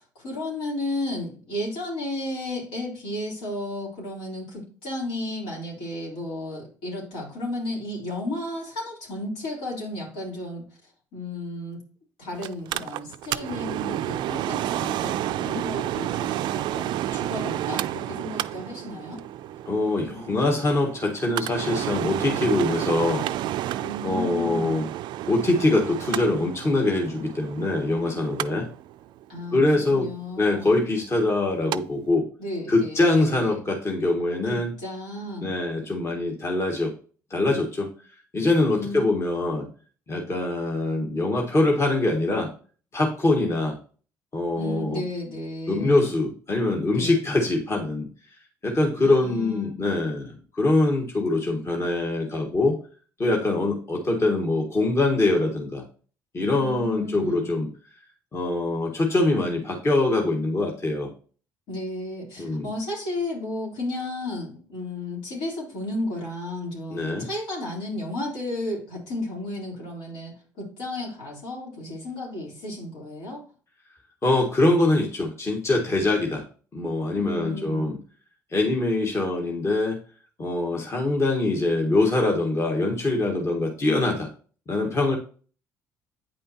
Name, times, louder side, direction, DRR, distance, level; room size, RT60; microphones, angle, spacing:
voice 1, 0.0-10.6 11.1-11.8 12.2-19.2 23.8-24.8 29.3-30.8 32.4-33.6 34.5-35.5 38.7-39.0 44.5-46.1 46.9-47.2 49.0-49.7 56.6-57.5 61.7-73.4 77.2-77.9, left 1 dB, 75° left, -3 dB, 3.5 m, -33 dB
Mechanical fan, 12.4-31.8 32.1-32.2, right 13 dB, 65° right, 0.4 m, -31 dB
voice 2, 19.6-23.3 24.0-24.8 25.3-28.7 29.5-30.1 30.4-32.2 32.7-34.7 35.4-36.9 37.3-37.9 38.3-39.7 40.1-42.5 42.9-43.8 44.3-45.0 45.7-48.1 48.6-52.8 53.2-55.8 56.3-57.7 58.3-61.1 62.4-62.7 66.9-67.3 74.2-76.4 76.7-78.0 78.5-80.0 80.4-84.3 84.7-85.2, left 2 dB, 30° left, 0 dB, 1.5 m, -23 dB
8.7 x 5.3 x 2.8 m, 0.40 s
hypercardioid pair, 65°, 8 cm